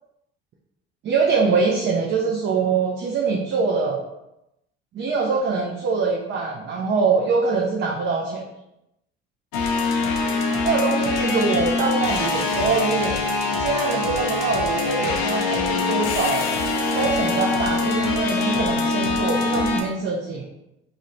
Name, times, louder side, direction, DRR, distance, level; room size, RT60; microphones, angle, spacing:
voice 1, 1.0-4.0 4.9-8.4 10.6-13.1 13.6-16.5 16.9-20.4, right 4 dB, 35° right, 0 dB, 0.4 m, -23 dB
sound 1, 9.5-19.8, left 3 dB, 70° left, 0.5 m, -23 dB
2.7 x 2.0 x 2.5 m, 0.88 s
hypercardioid pair, 60°, 33 cm